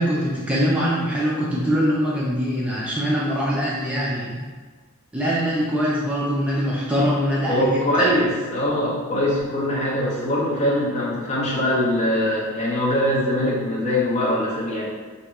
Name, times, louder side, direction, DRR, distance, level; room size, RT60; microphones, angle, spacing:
voice 1, 0.0-4.4 5.1-8.1, equal, 5° right, -7 dB, 0.4 m, -23 dB
voice 2, 7.5-14.9, left 1 dB, 35° left, -6 dB, 0.8 m, -22 dB
4.0 x 2.7 x 2.3 m, 1.4 s
head